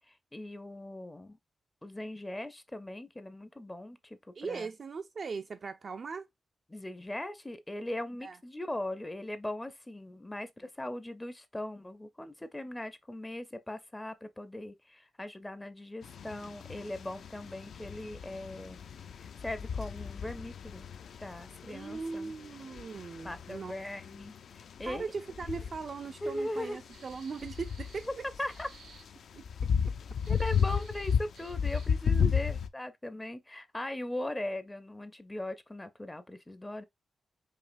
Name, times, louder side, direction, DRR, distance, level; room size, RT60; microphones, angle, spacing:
voice 1, 0.1-1.4 1.8-4.7 6.7-18.8 19.2-20.9 21.2-22.3 23.2-25.0 26.2-26.8 28.4-28.7 30.3-36.8, left 1 dB, 15° left, 0.5 m, -39 dB
voice 2, 4.4-6.3 8.2-8.4 21.7-23.7 24.9-28.1 29.3-29.4 32.2-32.3, right 5 dB, 50° right, 0.3 m, -39 dB
sound 1, 16.0-32.7, left 7 dB, 75° left, 0.4 m, -34 dB
sound 2, 26.9-28.1 28.5-29.1 30.2-32.0, right 6 dB, 90° right, 1.0 m, -56 dB
5.0 x 2.8 x 2.5 m
wide cardioid pair, 120°, 0 cm